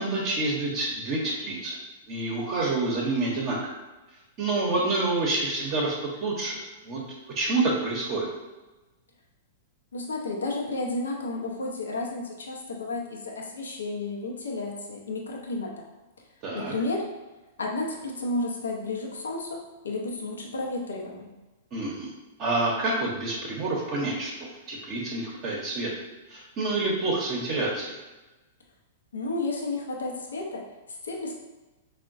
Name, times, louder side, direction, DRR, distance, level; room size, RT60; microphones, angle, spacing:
voice 1, 0.0-1.8 2.1-3.6 4.4-6.6 6.8-7.0 7.3-8.3 16.4-16.7 21.7-22.1 22.4-25.9 26.3-28.0, right 2 dB, 40° right, -4 dB, 0.6 m, -28 dB
voice 2, 9.9-15.9 16.5-17.1 17.6-21.3 29.1-31.3, left 2 dB, 85° left, 0 dB, 0.5 m, -32 dB
3.6 x 2.1 x 2.5 m, 1.1 s
hypercardioid pair, 115°, 0 cm